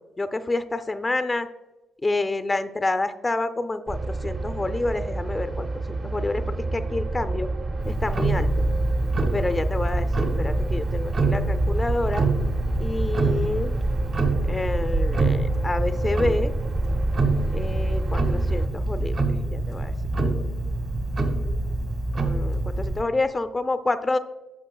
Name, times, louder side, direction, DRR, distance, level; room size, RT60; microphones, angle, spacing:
voice 1, 0.2-1.5 2.0-5.7 6.0-7.5 7.9-8.7 9.3-12.2 12.8-13.7 14.5-16.5 17.5-19.2 19.5-19.9 22.1-24.2, left 2 dB, 20° left, 11 dB, 0.4 m, -28 dB
sound 1, 3.9-18.7, right 2 dB, 35° right, 0.6 m, -29 dB
Tick-tock, 7.8-23.0, right 2 dB, 55° right, 1.4 m, -25 dB
11.5 x 6.1 x 2.2 m, 1.1 s
cardioid pair, 90°, 0 cm